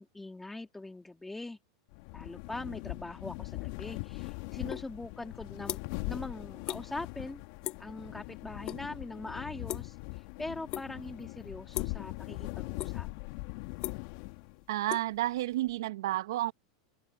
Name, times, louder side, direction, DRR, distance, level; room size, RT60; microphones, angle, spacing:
voice 1, 0.0-1.6 2.1-5.8 6.1-7.5 7.8-9.9 10.4-13.1, left 2 dB, 10° left, 2.6 m, -42 dB
sound 1, 1.9-14.6, left 25 dB, 60° left, 2.2 m, -41 dB
sound 2, 4.7-4.9 5.2-6.1 6.4-6.8 7.1-7.4 7.6-7.9 8.3-8.8 9.1-10.2 10.7-11.1 11.7-12.1 12.5-13.2 13.5-15.7, left 14 dB, 40° left, 2.0 m, -39 dB
voice 2, 14.7-16.5, right 15 dB, 70° right, 1.0 m, -31 dB
hypercardioid pair, 105°, 2 cm